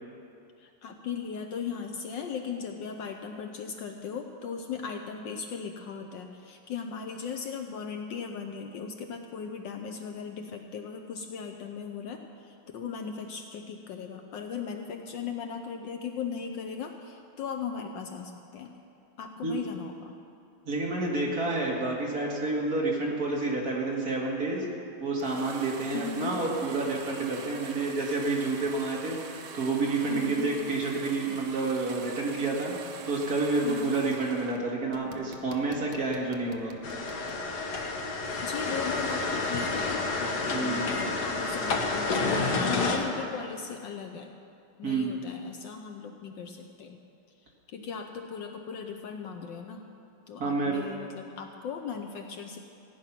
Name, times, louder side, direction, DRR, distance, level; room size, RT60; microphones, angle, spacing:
voice 1, 0.6-18.7 19.2-20.1 25.9-26.4 30.1-30.5 33.6-34.0 38.4-44.3 44.8-47.0 47.7-49.9 50.3-52.6, left 6 dB, 70° left, 4 dB, 1.3 m, -37 dB
voice 2, 20.7-24.7 25.0-36.7 40.5-40.9 44.8-45.1 50.4-50.8, right 3 dB, 45° right, -2 dB, 2.1 m, -29 dB
sound 1, 25.2-34.6 34.9-37.4, right 6 dB, 75° right, 1.7 m, -44 dB
sound 2, 36.8-43.0, left 3 dB, 55° left, 1.7 m, -29 dB
16.5 x 9.5 x 5.9 m, 2.6 s
omnidirectional pair, 2.4 m